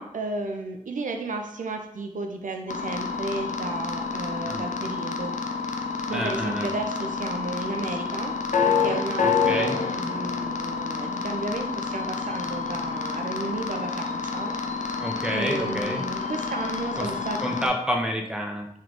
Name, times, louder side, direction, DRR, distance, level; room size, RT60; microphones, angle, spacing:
voice 1, 0.0-5.3 6.1-8.4 8.7-14.5 14.8-15.0 15.3-17.7, right 2 dB, 85° right, 4 dB, 0.5 m, -33 dB
sound 1, 2.7-17.7, left 5 dB, 75° left, 0.5 m, -28 dB
voice 2, 6.1-6.7 9.2-9.8 15.0-16.0 17.0-17.1 17.4-18.7, equal, 5° right, 1 dB, 0.8 m, -29 dB
3.2 x 3.1 x 3.9 m, 0.73 s
cardioid pair, 45°, 13 cm